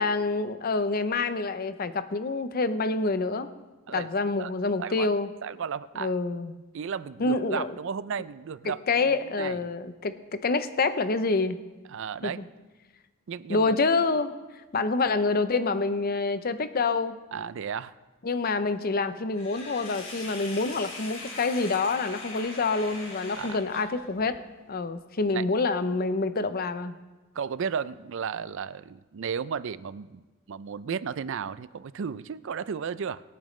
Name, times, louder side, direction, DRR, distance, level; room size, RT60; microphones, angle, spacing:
voice 1, 0.0-3.5 3.9-5.3 6.0-6.6 7.2-7.7 8.6-11.6 12.2-12.3 13.5-14.3 14.7-17.2 18.2-24.4 24.7-27.0, left 3 dB, 45° left, 11 dB, 0.6 m, -27 dB
voice 2, 4.8-5.1 5.4-6.1 6.7-9.6 11.9-12.4 13.3-13.8 17.3-17.9 23.4-23.6 25.3-25.4 27.3-30.2 30.5-33.2, right 6 dB, 60° right, 16 dB, 0.4 m, -34 dB
Sink (filling or washing), 19.3-24.3, left 2 dB, 80° left, 3.9 m, -41 dB
23.0 x 9.0 x 3.2 m, 1.2 s
head